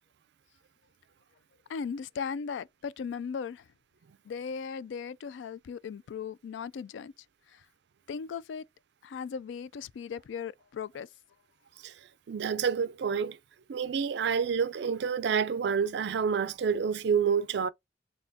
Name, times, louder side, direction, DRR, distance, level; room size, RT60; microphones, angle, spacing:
voice 1, 1.7-3.7 4.2-7.1 7.5-7.7 8.1-8.7 9.0-11.1, left 6 dB, 85° left, 0.3 m, -37 dB
voice 2, 12.3-13.4 13.7-17.7, right 6 dB, 65° right, 0.4 m, -28 dB
4.1 x 3.7 x 2.7 m
head